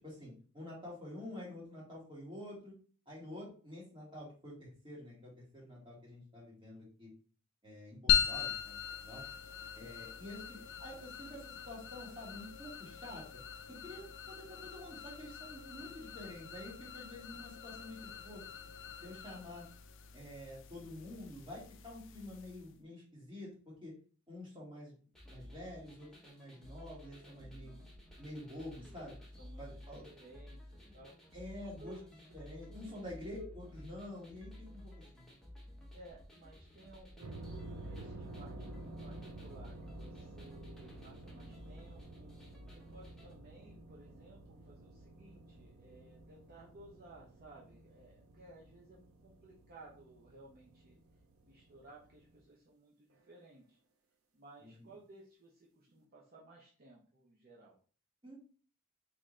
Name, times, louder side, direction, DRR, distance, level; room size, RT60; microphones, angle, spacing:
voice 1, 0.0-2.8 3.1-7.1 7.6-9.2 9.7-13.2 13.7-18.4 19.0-19.7 20.1-23.5 23.8-23.9 24.3-24.9 25.3-27.8 28.2-29.1 29.6-30.0 31.3-32.0 32.3-35.3 54.6-54.9 58.2-58.4, left 1 dB, 25° right, -5 dB, 1.9 m, -48 dB
sound 1, 8.1-22.8, left 8 dB, 65° left, 0.4 m, -40 dB
sound 2, 25.1-43.4, left 1 dB, ahead, 0.9 m, -53 dB
voice 2, 27.3-27.8 29.4-32.4 33.0-33.2 35.9-42.4 42.7-51.0 51.4-53.8 54.3-57.8, right 2 dB, 45° right, -4 dB, 0.7 m, -58 dB
sound 3, 37.2-52.4, right 2 dB, 80° right, 0.7 m, -51 dB
3.8 x 3.2 x 3.2 m, 0.41 s
head